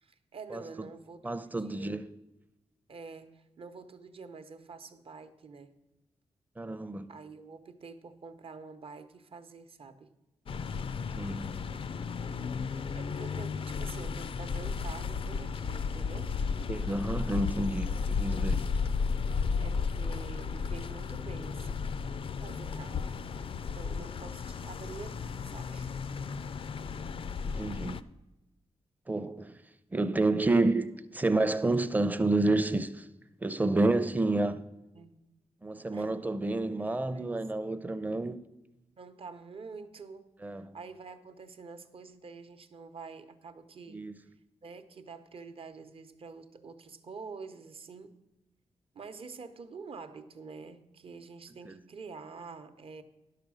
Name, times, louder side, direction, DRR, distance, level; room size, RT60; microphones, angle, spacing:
voice 1, 0.0-1.9 2.9-5.7 7.1-10.1 12.9-16.6 19.6-21.8 22.4-23.1 23.7-25.9 34.9-35.2 35.9-36.1 36.8-37.4 39.0-40.3 40.7-44.0 44.6-48.1 48.9-53.0, right 4 dB, 55° right, 0.8 m, -47 dB
voice 2, 1.2-2.0 6.6-7.1 11.2-11.5 16.7-18.6 27.6-28.0 29.1-29.5 29.9-33.0 33.4-34.6 35.6-38.4 40.4-40.8 43.9-44.2 51.7-51.8, right 2 dB, 15° right, 0.6 m, -29 dB
sound 1, 10.5-28.0, left 5 dB, 55° left, 0.4 m, -34 dB
10.5 x 6.7 x 6.2 m
wide cardioid pair, 100°, 11 cm